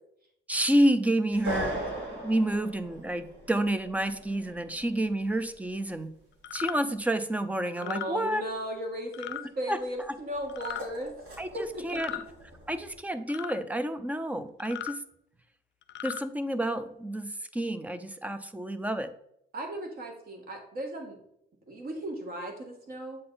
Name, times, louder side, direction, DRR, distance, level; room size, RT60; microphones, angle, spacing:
voice 1, 0.5-1.8 2.2-6.1 6.5-8.4 9.7-9.8 11.4-11.5 11.8-12.1 12.7-15.0 16.0-19.1, right 1 dB, 5° right, 11 dB, 0.4 m, -29 dB
sound 1, 1.3-6.0 10.0-13.0, right 1 dB, 80° right, 2.6 m, -40 dB
sound 2, 6.4-6.8 7.7-8.1 9.1-9.4 10.5-10.8 11.9-12.3 13.3-13.6 14.6-14.9 15.8-16.2, left 13 dB, 65° left, 0.4 m, -37 dB
voice 2, 7.8-12.2 19.5-21.2 21.7-23.2, right 1 dB, 50° right, 2 dB, 1.6 m, -36 dB
7.6 x 3.9 x 3.9 m, 0.74 s
cardioid pair, 155°, 20 cm